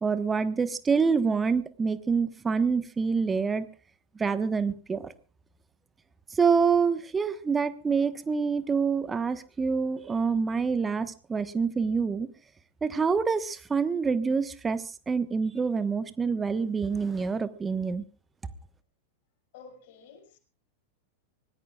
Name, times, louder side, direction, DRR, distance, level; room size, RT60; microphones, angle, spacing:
voice 1, 0.0-3.7 4.1-5.1 6.3-12.3 12.8-18.0, right 5 dB, 15° right, 13 dB, 1.3 m, -26 dB
voice 2, 19.5-20.4, left 5 dB, 50° left, 4 dB, 5.9 m, -50 dB
25.0 x 19.0 x 2.4 m, 0.36 s
figure-of-eight pair, 90°, 0 cm